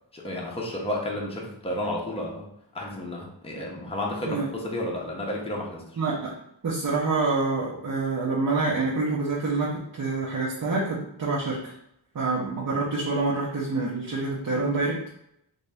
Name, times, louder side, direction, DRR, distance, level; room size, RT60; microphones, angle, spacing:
voice 1, 0.1-2.5 2.7-6.0, left 1 dB, 15° left, -2 dB, 0.7 m, -32 dB
voice 2, 6.0-6.3 6.6-11.7 12.1-15.0, right 3 dB, 45° right, -5 dB, 0.7 m, -27 dB
3.5 x 2.7 x 3.3 m, 0.76 s
wide cardioid pair, 155°, 45 cm